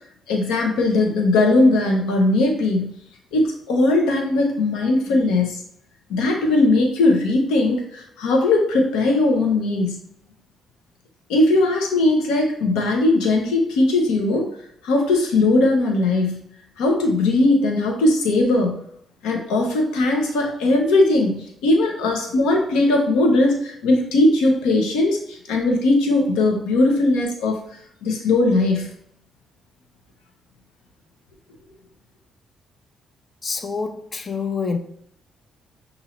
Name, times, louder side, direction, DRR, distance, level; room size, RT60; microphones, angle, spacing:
voice 1, 0.3-2.9 3.3-5.6 6.1-10.0 11.3-14.5 14.8-16.4 16.8-18.8 19.2-27.6 28.0-28.9, left 2 dB, 90° left, 0.8 m, -19 dB
voice 2, 33.4-34.8, left 5 dB, 40° left, 0.6 m, -26 dB
5.7 x 2.6 x 3.0 m
supercardioid pair, 70°, 0 cm